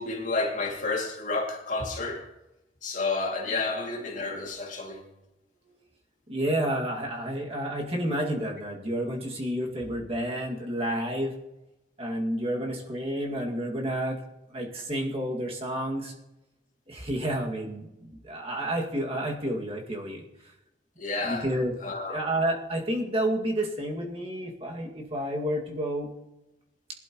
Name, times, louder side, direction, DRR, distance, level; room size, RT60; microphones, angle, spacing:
voice 1, 0.0-2.3 2.8-5.0 21.0-21.5 21.8-22.2, left 3 dB, 45° left, 2.7 m, -30 dB
voice 2, 6.3-11.3 12.0-14.2 14.5-16.1 16.9-20.2 21.2-21.7 22.1-26.1, right 1 dB, 35° right, 2.3 m, -30 dB
21.5 x 12.0 x 3.1 m
head